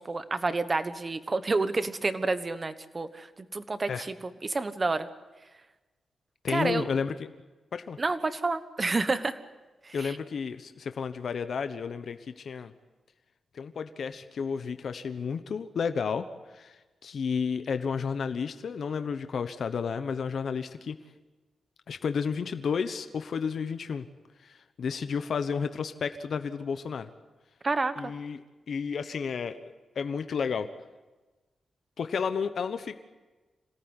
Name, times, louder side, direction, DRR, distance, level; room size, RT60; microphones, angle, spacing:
voice 1, 0.0-3.3 3.5-4.1 4.4-5.1 6.5-6.8 8.0-9.4 9.8-10.2 27.6-28.1, right 3 dB, 25° right, 12 dB, 1.2 m, -29 dB
voice 2, 6.4-7.1 7.7-8.0 9.9-12.7 13.5-16.3 16.5-21.0 21.9-24.1 24.4-27.1 28.0-30.7 32.0-33.0, left 6 dB, 60° left, 10 dB, 1.1 m, -32 dB
26.5 x 18.0 x 9.8 m, 1.2 s
wide cardioid pair, 145°, 0 cm